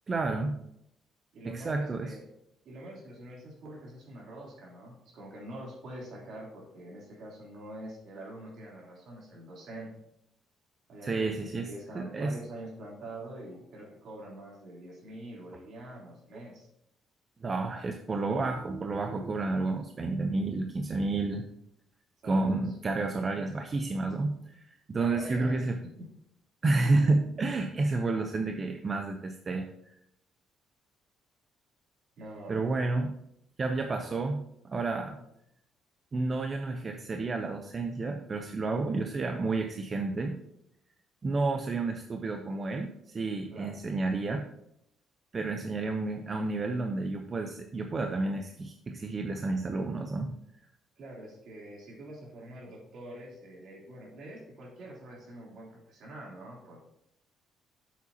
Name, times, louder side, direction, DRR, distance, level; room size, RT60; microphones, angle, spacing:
voice 1, 0.1-0.6 1.4-2.1 11.0-11.7 11.9-12.3 16.3-16.4 17.4-21.4 22.2-25.8 26.6-29.7 32.5-33.1 33.6-35.2 36.1-40.4 41.2-44.4 45.3-50.4, right 3 dB, 35° right, 5 dB, 0.7 m, -30 dB
voice 2, 1.3-2.2 2.6-9.9 10.9-16.7 22.2-22.7 25.0-25.5 25.8-26.1 32.2-32.8 35.1-35.2 43.5-43.8 51.0-56.9, right 1 dB, 65° right, -3 dB, 3.2 m, -45 dB
8.2 x 7.4 x 2.9 m, 0.78 s
cardioid pair, 90°, 0 cm